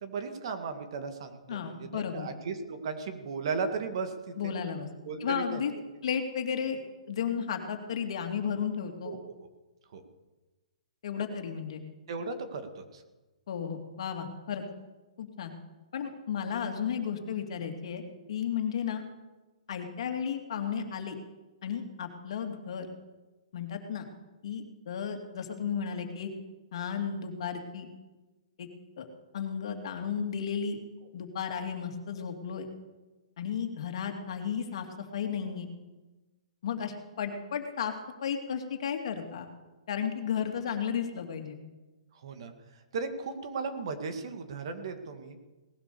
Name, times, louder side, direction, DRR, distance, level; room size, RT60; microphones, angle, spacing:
voice 1, 0.0-4.5 5.0-5.6 9.0-9.2 9.9-10.0 12.1-13.0 42.2-42.5 42.9-45.4, right 4 dB, 50° right, 7 dB, 1.9 m, -36 dB
voice 2, 1.5-2.3 4.4-4.9 5.2-5.7 6.0-6.8 7.1-9.2 11.0-11.8 13.5-14.6 15.2-15.5 15.9-18.0 18.3-19.0 19.7-21.2 21.6-22.9 23.5-24.1 24.4-26.3 26.7-27.9 28.6-28.7 29.0-29.1 29.3-30.8 31.1-32.7 33.4-35.7 36.6-37.9 38.2-39.5 39.9-41.6, left 7 dB, 55° left, 5 dB, 2.4 m, -33 dB
18.5 x 11.0 x 6.9 m, 1.2 s
hypercardioid pair, 160°, 4 cm